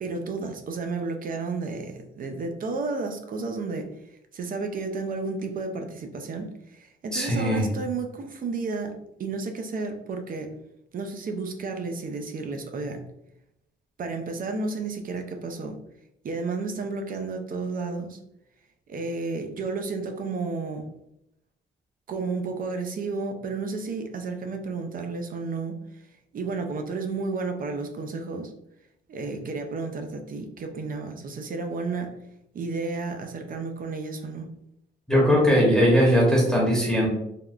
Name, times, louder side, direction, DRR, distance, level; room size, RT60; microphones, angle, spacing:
voice 1, 0.0-3.9 4.3-8.9 9.2-10.5 10.9-13.0 14.0-15.8 16.2-18.2 18.9-20.8 22.1-25.7 26.3-28.5 29.1-32.1 32.5-34.5, right 3 dB, 45° right, 5 dB, 0.5 m, -32 dB
voice 2, 7.1-7.7 35.1-37.1, equal, 5° left, -4 dB, 0.9 m, -20 dB
3.4 x 2.2 x 2.4 m, 0.80 s
cardioid pair, 90°, 20 cm